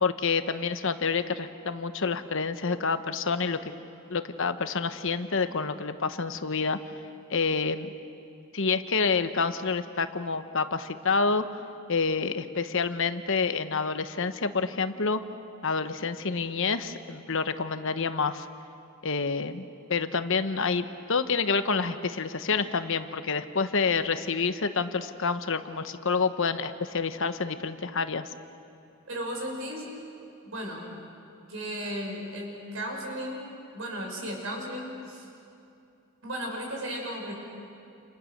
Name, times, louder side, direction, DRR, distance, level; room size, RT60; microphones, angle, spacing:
voice 1, 0.0-3.7 4.1-6.8 7.3-7.9 8.5-11.4 11.9-15.2 15.6-18.5 19.0-28.3, left 4 dB, 60° left, 10 dB, 1.1 m, -28 dB
voice 2, 29.1-29.9 30.4-30.9 31.5-33.5 33.7-35.3 36.2-37.3, equal, 65° right, 0 dB, 6.5 m, -35 dB
29.0 x 29.0 x 6.6 m, 2.6 s
head